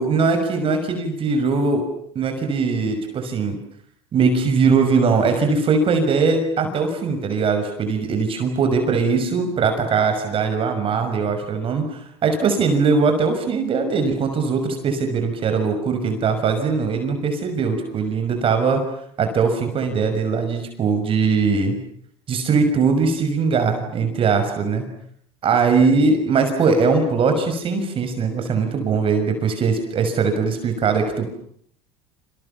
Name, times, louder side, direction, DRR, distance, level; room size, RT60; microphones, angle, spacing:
voice 1, 0.0-1.9 2.1-3.6 4.1-18.8 19.2-21.8 22.3-24.9 25.4-31.3, right 4 dB, 40° right, 6 dB, 6.2 m, -20 dB
29.0 x 27.0 x 7.3 m, 0.66 s
supercardioid pair, 90°, 14 cm